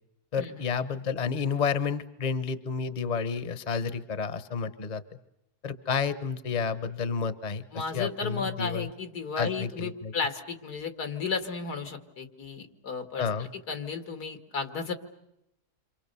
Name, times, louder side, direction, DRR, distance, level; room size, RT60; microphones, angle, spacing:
voice 1, 0.3-5.0 5.6-8.9 9.4-10.1 13.2-13.5, left 6 dB, 30° left, 13 dB, 1.0 m, -30 dB
voice 2, 7.7-14.9, left 5 dB, 85° left, 7 dB, 2.7 m, -34 dB
28.5 x 26.5 x 6.9 m, 0.84 s
omnidirectional pair, 1.6 m